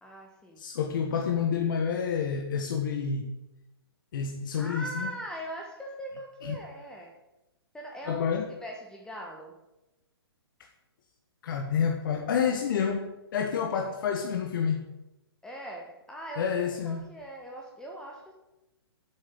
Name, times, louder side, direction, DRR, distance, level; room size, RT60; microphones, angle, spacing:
voice 1, 0.0-0.6 4.6-7.2 7.7-8.3 8.6-9.6 15.4-16.5 16.8-18.3, right 1 dB, 5° left, 0 dB, 1.2 m, -40 dB
voice 2, 0.6-3.3 4.1-5.1 6.4-6.5 8.1-8.5 11.4-14.9 16.4-17.0, left 7 dB, 50° left, 2 dB, 1.4 m, -29 dB
8.4 x 7.9 x 7.0 m, 0.97 s
figure-of-eight pair, 125°, 13 cm